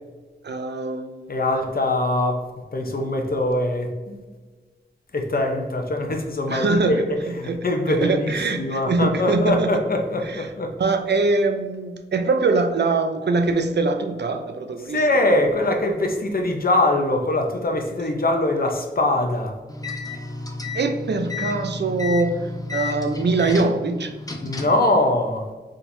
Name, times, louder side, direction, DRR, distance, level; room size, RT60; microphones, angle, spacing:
voice 1, 0.4-1.3 6.5-9.8 10.2-10.5 10.8-15.2 20.7-24.1, right 3 dB, 70° right, 6 dB, 0.5 m, -23 dB
voice 2, 1.3-2.4 2.7-4.2 5.1-7.0 7.4-10.7 14.9-19.5 24.4-25.5, left 1 dB, 55° left, 3 dB, 0.7 m, -22 dB
sound 1, 19.7-24.9, left 3 dB, 20° left, 0.6 m, -32 dB
4.4 x 3.6 x 2.6 m, 1.3 s
wide cardioid pair, 65°, 18 cm